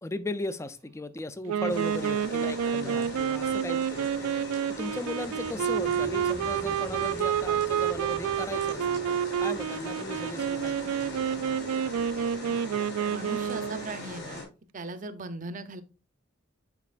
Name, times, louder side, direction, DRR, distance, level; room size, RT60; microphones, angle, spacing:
voice 1, 0.0-11.0, left 1 dB, 15° left, 0.4 m, -37 dB
Wind instrument woodwind instrument, 1.5-13.9, right 8 dB, 90° right, 0.3 m, -29 dB
sound 1, 1.7-14.4, left 2 dB, 55° left, 3.2 m, -40 dB
voice 2, 2.8-3.2 13.1-14.4 14.7-15.8, right 2 dB, 35° right, 0.6 m, -39 dB
sound 2, 5.1-9.9, right 1 dB, 30° left, 1.9 m, -47 dB
8.2 x 5.2 x 2.4 m
head